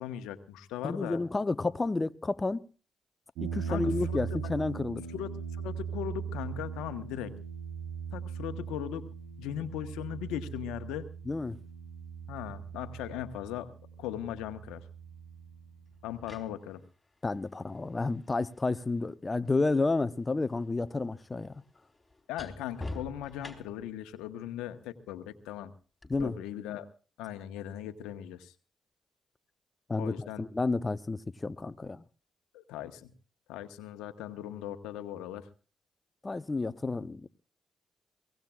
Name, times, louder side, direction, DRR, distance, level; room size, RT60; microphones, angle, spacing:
voice 1, 0.0-1.2 3.7-4.2 5.1-5.3 5.6-7.3 8.1-9.1 9.4-11.1 12.3-13.7 14.0-14.8 16.0-16.8 22.3-25.7 26.2-26.9 27.2-28.5 30.0-30.4 32.5-33.1 33.5-35.5, left 11 dB, 85° left, 1.0 m, -38 dB
voice 2, 0.8-2.6 3.4-5.0 11.3-11.6 17.2-21.5 26.1-26.4 29.9-32.0 36.2-37.3, left 3 dB, 30° left, 0.7 m, -31 dB
sound 1, 3.4-16.5, right 7 dB, 85° right, 3.7 m, -40 dB
sound 2, 14.8-14.9 15.9-19.9 20.2-24.0 26.0-26.2, left 2 dB, 15° left, 4.0 m, -47 dB
23.0 x 18.0 x 2.4 m
hypercardioid pair, 45°, 0 cm